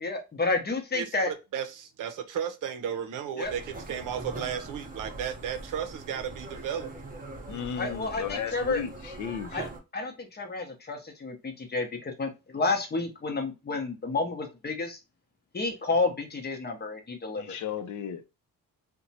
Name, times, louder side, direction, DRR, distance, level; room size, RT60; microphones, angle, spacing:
voice 1, 0.0-1.3 3.4-3.5 7.8-8.8 9.5-15.0 15.5-17.6, left 3 dB, 30° left, 0.8 m, -30 dB
voice 2, 0.9-6.9, right 8 dB, 65° right, 0.6 m, -34 dB
sound 1, 3.4-9.8, right 2 dB, 25° right, 0.8 m, -42 dB
voice 3, 7.5-9.7 17.4-18.3, left 8 dB, 60° left, 0.5 m, -35 dB
2.7 x 2.2 x 2.7 m
cardioid pair, 75°, 34 cm